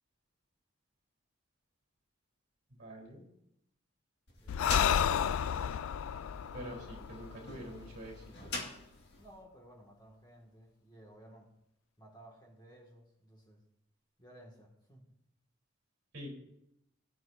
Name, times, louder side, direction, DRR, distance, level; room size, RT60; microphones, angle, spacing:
voice 1, 2.8-3.3 4.5-5.1 6.5-8.5 16.1-16.3, equal, 50° right, 0 dB, 3.5 m, -47 dB
sound 1, 4.3-9.4, left 2 dB, 55° left, 2.0 m, -44 dB
Breathing, 4.5-8.0, left 8 dB, 80° left, 0.3 m, -31 dB
voice 2, 9.2-11.5 12.0-13.6 14.2-15.1, right 1 dB, 20° left, -1 dB, 1.9 m, -56 dB
17.5 x 9.6 x 2.6 m, 0.79 s
head